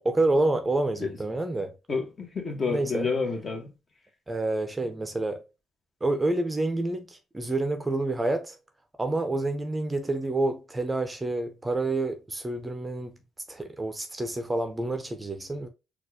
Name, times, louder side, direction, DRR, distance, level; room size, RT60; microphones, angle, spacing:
voice 1, 0.0-1.7 2.7-3.1 4.3-5.4 6.0-8.6 9.0-13.2 13.5-15.7, right 2 dB, 15° right, 0.6 m, -28 dB
voice 2, 1.9-3.7, left 4 dB, 40° left, 1.2 m, -29 dB
4.2 x 2.4 x 2.7 m
cardioid pair, 90°, 0 cm